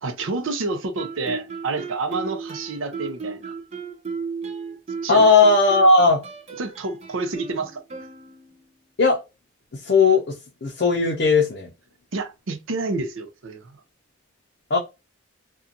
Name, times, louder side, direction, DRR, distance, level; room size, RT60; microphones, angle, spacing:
voice 1, 0.0-3.5 5.0-5.3 6.6-7.8 12.1-13.8, right 3 dB, 80° right, 0.6 m, -29 dB
Guitar, 1.0-8.7, right 5 dB, 30° right, 0.5 m, -35 dB
voice 2, 5.1-6.2 9.0-9.2 9.7-11.7 14.7-14.8, left 3 dB, 55° left, 0.5 m, -17 dB
2.5 x 2.3 x 2.6 m
head